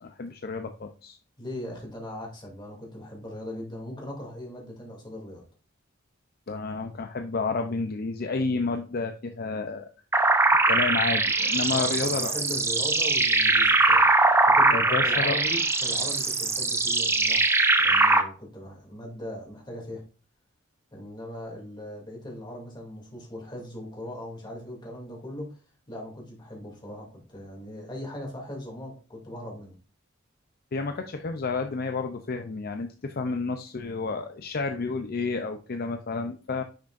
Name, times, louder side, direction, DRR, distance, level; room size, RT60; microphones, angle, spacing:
voice 1, 0.0-1.2 6.5-9.9 10.7-12.3 14.7-15.4 30.7-36.6, left 4 dB, 50° left, 6 dB, 0.6 m, -30 dB
voice 2, 1.4-5.4 11.7-20.0 20.9-25.6 25.9-29.7, left 1 dB, 25° left, -1 dB, 2.7 m, -39 dB
sound 1, 10.1-18.2, right 2 dB, 15° right, 0.7 m, -22 dB
10.0 x 6.0 x 2.5 m, 0.36 s
head